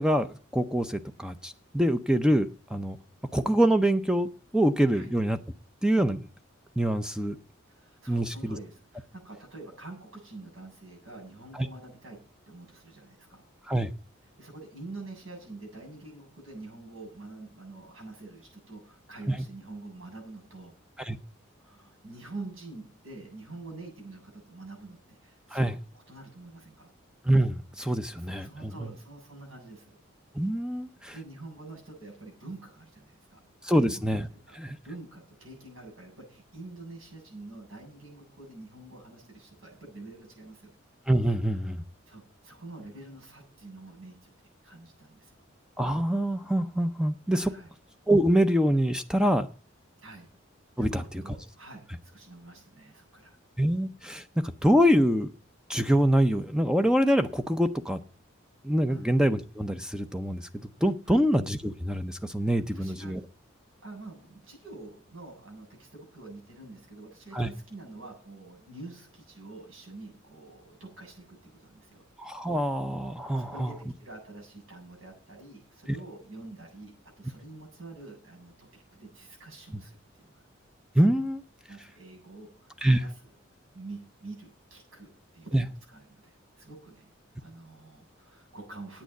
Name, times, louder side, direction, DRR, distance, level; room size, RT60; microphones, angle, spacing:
voice 1, 0.0-3.0 3.3-4.3 4.5-5.4 5.8-6.3 6.8-7.4 8.1-8.3 13.7-13.9 19.3-19.4 21.0-21.2 25.5-25.8 27.2-28.7 30.3-31.1 33.6-34.3 34.5-34.8 41.1-41.8 45.8-47.5 48.1-49.5 50.8-51.0 53.6-55.3 55.7-58.0 58.6-60.5 60.8-63.2 67.3-67.5 72.2-73.7 80.9-81.4 82.8-83.0 85.5-85.6, equal, 5° right, 0.5 m, -25 dB
voice 2, 7.7-12.2 12.5-13.4 14.4-20.7 21.6-26.9 28.1-29.9 31.1-34.0 34.5-40.7 42.1-44.3 44.6-45.5 47.3-47.7 50.0-50.3 50.8-53.4 58.9-59.1 61.0-61.2 62.4-63.1 63.8-72.1 73.4-80.4 80.9-81.1 81.7-83.1 83.7-87.1 87.4-89.0, right 2 dB, 80° right, 7.9 m, -46 dB
9.2 x 8.9 x 8.2 m
head